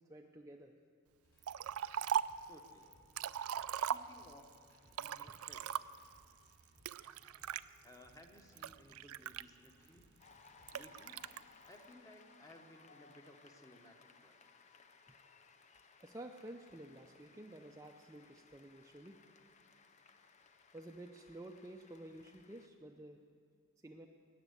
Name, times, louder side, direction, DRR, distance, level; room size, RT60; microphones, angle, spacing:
voice 1, 0.1-0.7 16.0-19.2 20.7-23.2 23.8-24.1, right 1 dB, 15° right, 2 dB, 0.5 m, -51 dB
sound 1, 1.2-10.8, equal, 50° left, 4.5 m, -68 dB
Liquid, 1.4-2.4 2.9-4.4 4.9-6.1 6.8-7.6 8.2-9.9 10.7-11.4, right 8 dB, 75° right, 0.4 m, -39 dB
voice 2, 2.5-2.9 3.7-4.5 4.9-5.9 7.8-10.1 10.7-11.3 11.7-14.4, left 1 dB, 15° left, 4 dB, 1.0 m, -60 dB
Cheering / Applause, 10.2-22.7, left 4 dB, 30° left, 0.6 m, -63 dB
19.5 x 7.4 x 8.1 m, 2.2 s
head